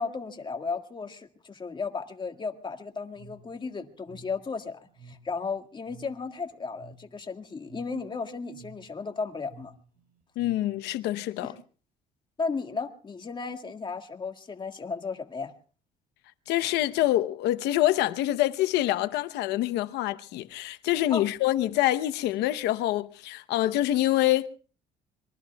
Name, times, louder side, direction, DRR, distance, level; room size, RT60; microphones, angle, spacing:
voice 1, 0.0-9.7 12.4-15.5 21.1-21.3, left 4 dB, 25° left, 1.9 m, -34 dB
sound 1, 3.1-11.0, right 3 dB, 60° right, 4.6 m, -53 dB
voice 2, 10.4-11.5 16.5-24.5, left 14 dB, 85° left, 0.9 m, -26 dB
26.5 x 23.0 x 2.3 m
cardioid pair, 110°, 17 cm